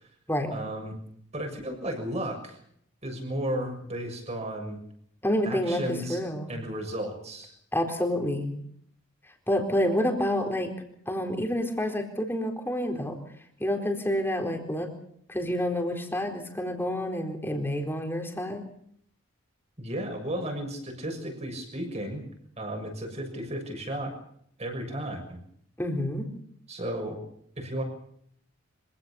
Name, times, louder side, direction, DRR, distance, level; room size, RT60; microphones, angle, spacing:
voice 1, 0.5-1.0 1.3-2.6 3.0-4.8 5.4-6.2 6.5-7.5 19.8-22.2 22.6-24.2 24.6-25.4 26.7-27.2 27.6-27.8, right 1 dB, 30° right, 4 dB, 6.6 m, -34 dB
voice 2, 5.2-6.5 7.7-8.5 9.5-10.7 11.1-13.2 13.6-14.9 15.3-18.6 25.8-26.3, left 1 dB, 10° left, 3 dB, 4.2 m, -28 dB
25.5 x 17.5 x 7.1 m, 0.67 s
head